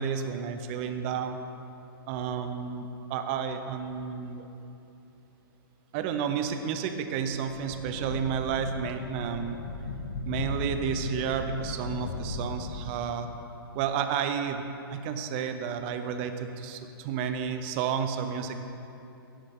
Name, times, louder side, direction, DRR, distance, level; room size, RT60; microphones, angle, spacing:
voice 1, 0.0-1.4 2.1-4.5 5.9-9.6 10.2-13.3 13.7-14.6 14.9-18.6, right 7 dB, 30° right, 8 dB, 0.6 m, -31 dB
sound 1, 7.3-13.4, left 3 dB, 70° left, 1.1 m, -37 dB
14.0 x 10.0 x 3.6 m, 2.8 s
hypercardioid pair, 160°, 13 cm